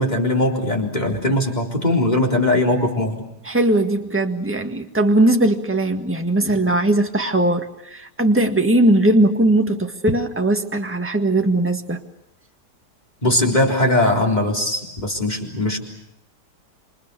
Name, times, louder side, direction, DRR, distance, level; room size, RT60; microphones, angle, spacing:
voice 1, 0.0-3.3 13.2-15.8, left 1 dB, 25° left, 1 dB, 4.0 m, -20 dB
voice 2, 3.4-12.0, right 1 dB, 10° right, 4 dB, 1.7 m, -19 dB
27.5 x 27.0 x 6.9 m, 0.84 s
omnidirectional pair, 1.8 m